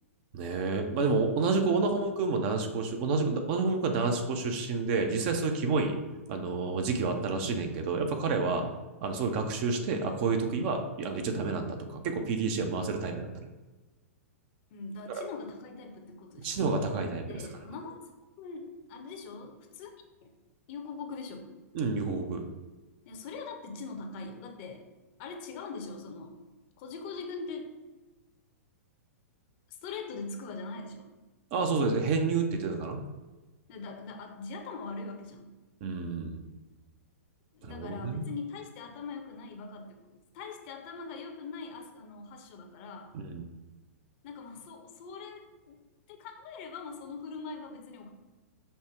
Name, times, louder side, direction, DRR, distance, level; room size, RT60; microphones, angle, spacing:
voice 1, 0.3-6.0 6.3-8.7 9.0-13.4 15.1-15.2 16.4-17.4 21.7-22.4 31.5-33.0 35.8-36.5 37.6-38.2 43.1-43.4, right 4 dB, 45° right, 5 dB, 0.7 m, -29 dB
voice 2, 14.7-16.7 17.3-18.1 18.4-19.9 20.2-20.3 20.7-21.6 23.0-24.8 25.2-26.4 26.8-27.7 29.7-31.1 33.7-35.5 37.5-43.1 44.2-45.8 46.1-48.1, left 4 dB, 45° left, 4 dB, 0.8 m, -42 dB
5.4 x 2.1 x 4.6 m, 1.2 s
figure-of-eight pair, 110°, 8 cm